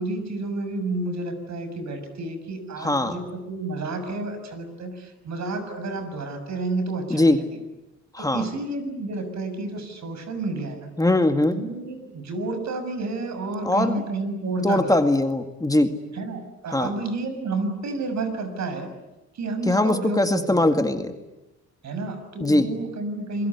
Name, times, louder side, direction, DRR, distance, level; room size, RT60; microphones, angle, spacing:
voice 1, 0.0-7.4 8.2-10.9 11.5-15.0 16.1-18.9 19.3-20.6 21.8-23.5, right 2 dB, 65° right, 8 dB, 6.4 m, -30 dB
voice 2, 2.8-3.2 7.1-7.4 8.1-8.4 11.0-11.6 13.6-14.0 14.6-15.9 16.7-16.9 19.7-21.1 22.4-22.7, left 1 dB, 10° left, 7 dB, 2.0 m, -21 dB
27.0 x 22.0 x 9.8 m, 0.99 s
cardioid pair, 90°, 30 cm